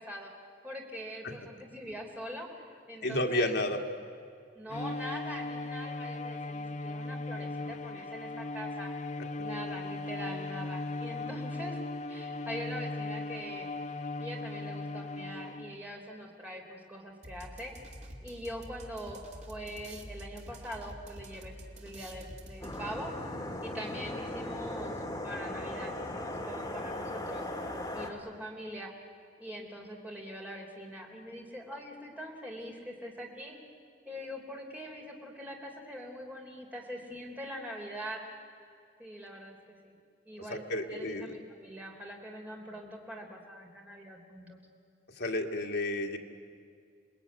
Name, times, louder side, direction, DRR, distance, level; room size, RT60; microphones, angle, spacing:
voice 1, 0.0-3.5 4.5-8.9 9.4-11.8 12.1-13.7 14.2-17.7 18.2-19.2 19.5-23.1 23.6-27.5 27.9-28.9 29.4-33.6 34.0-38.2 39.0-39.6 39.8-40.0 40.2-44.6, equal, 10° right, 0 dB, 3.4 m, -43 dB
voice 2, 3.0-3.8 9.2-9.3 40.5-41.4 45.2-46.2, left 1 dB, 60° left, 2 dB, 2.0 m, -31 dB
Bowed string instrument, 4.7-15.9, left 2 dB, 40° left, 0.8 m, -38 dB
sound 1, 17.2-23.1, right 1 dB, 40° right, 2.4 m, -47 dB
sound 2, 22.6-28.1, left 1 dB, 20° left, 2.3 m, -38 dB
27.5 x 20.0 x 9.5 m, 2.2 s
head